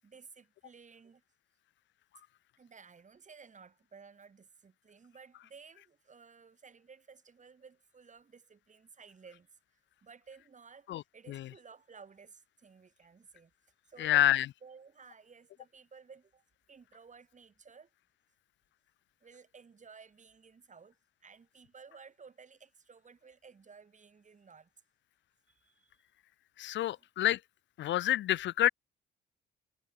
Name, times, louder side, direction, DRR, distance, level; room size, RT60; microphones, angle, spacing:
voice 1, 0.0-1.2 2.6-9.5 10.0-13.5 13.9-16.4 16.7-17.9 19.2-24.7 25.5-26.0 26.9-27.1, right 5 dB, 40° right, 7.9 m, -56 dB
voice 2, 14.0-14.5 26.6-27.4 27.8-28.7, left 13 dB, 70° left, 0.5 m, -27 dB
cardioid pair, 90°, 20 cm